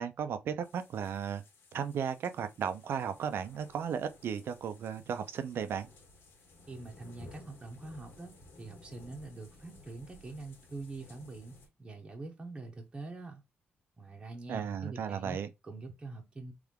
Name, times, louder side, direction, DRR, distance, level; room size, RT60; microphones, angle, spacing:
voice 1, 0.0-1.4 1.7-5.9 14.5-15.5, right 7 dB, 75° right, 0.7 m, -35 dB
sound 1, 0.6-11.7, left 2 dB, 85° left, 2.0 m, -56 dB
voice 2, 6.7-13.4 14.0-15.4 15.6-16.5, right 3 dB, 20° right, 1.1 m, -45 dB
3.5 x 3.5 x 3.6 m
wide cardioid pair, 150°, 4 cm